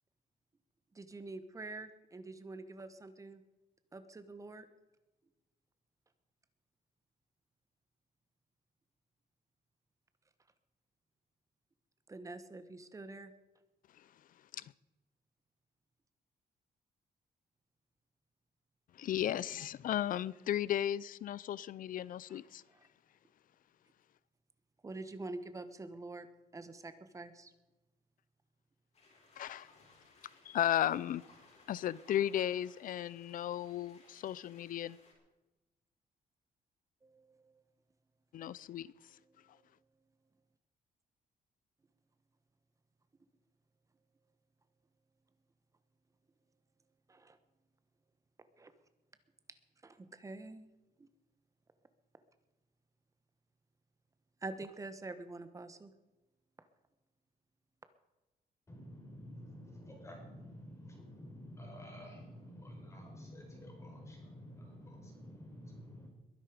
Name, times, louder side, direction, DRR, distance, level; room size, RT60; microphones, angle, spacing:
voice 1, 0.9-3.4 3.9-4.7 12.1-13.3 22.3-22.4 22.7-22.8 24.8-26.3 26.5-27.5 37.0-37.6 39.5-39.6 47.1-47.4 48.6-48.7 49.8-50.7 51.0-51.1 54.4-55.9, right 2 dB, 20° right, 1.2 m, -46 dB
voice 2, 19.0-22.6 29.4-29.7 30.5-31.2 31.7-35.0 38.3-38.9, left 11 dB, 65° left, 0.5 m, -35 dB
sound 1, 28.9-35.1, left 2 dB, 45° left, 5.4 m, -63 dB
voice 3, 58.7-66.1, equal, 20° left, 4.8 m, -50 dB
22.0 x 11.0 x 5.0 m
cardioid pair, 145°, 15 cm